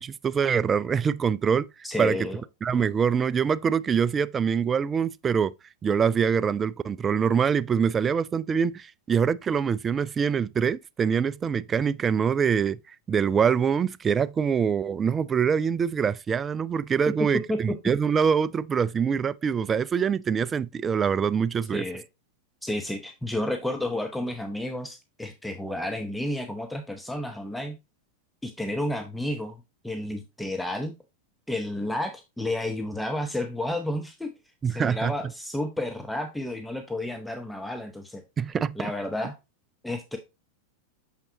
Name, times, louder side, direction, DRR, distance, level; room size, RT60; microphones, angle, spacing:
voice 1, 0.0-1.7 2.0-2.2 2.6-5.5 5.8-12.8 13.1-21.8 34.6-35.1 38.4-38.8, right 7 dB, 20° right, 0.3 m, -24 dB
voice 2, 1.8-2.4 17.5-17.6 21.7-22.0 22.6-27.8 28.4-29.6 29.8-30.9 31.5-34.3 34.6-38.2 38.8-39.4 39.8-40.2, left 1 dB, 5° left, 0.8 m, -31 dB
6.6 x 5.8 x 2.8 m
figure-of-eight pair, 90°, 0 cm